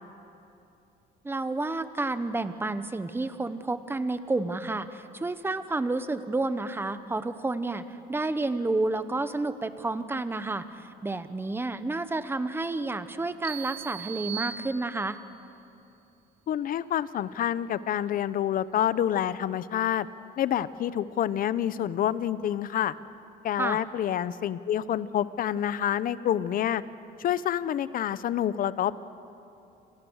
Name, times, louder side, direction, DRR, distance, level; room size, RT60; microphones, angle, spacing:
voice 1, 1.2-15.2 23.6-23.8, right 2 dB, 15° right, 11 dB, 1.2 m, -30 dB
sound 1, 13.4-15.3, right 9 dB, 35° right, 3.0 m, -39 dB
voice 2, 16.5-20.1 20.4-22.9 23.4-26.8 27.2-28.9, left 10 dB, 55° left, 16 dB, 0.8 m, -27 dB
28.5 x 26.5 x 6.5 m, 2.8 s
cardioid pair, 110°, 17 cm